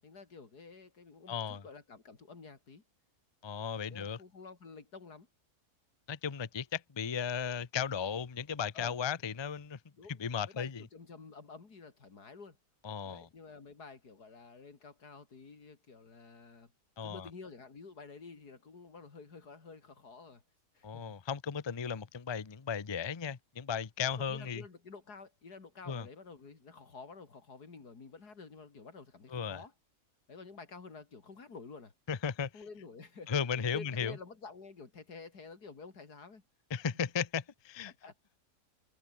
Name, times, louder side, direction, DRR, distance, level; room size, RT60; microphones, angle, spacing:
voice 1, 0.0-2.8 3.9-5.3 8.7-8.9 10.0-10.1 10.6-12.6 13.0-16.7 17.0-20.4 20.8-21.1 24.1-29.7 30.3-31.9 32.5-36.4 37.9-38.1, left 4 dB, 90° left, 3.5 m, -50 dB
voice 2, 1.3-1.6 3.4-4.2 6.1-9.8 10.1-10.9 12.8-13.3 17.0-17.3 20.8-24.6 25.9-26.1 29.3-29.6 32.1-32.5 33.3-34.2 36.7-37.9, left 7 dB, 25° left, 0.5 m, -35 dB
omnidirectional pair, 1.6 m